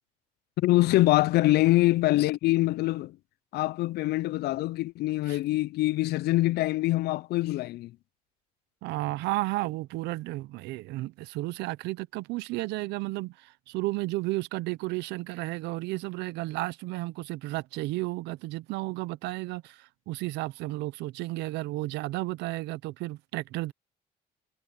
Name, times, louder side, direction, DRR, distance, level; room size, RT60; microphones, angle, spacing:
voice 1, 0.6-3.2 3.5-7.9, left 18 dB, 70° left, 0.5 m, -24 dB
voice 2, 8.8-23.7, right 19 dB, 90° right, 0.7 m, -33 dB
cardioid pair, 110°, 17 cm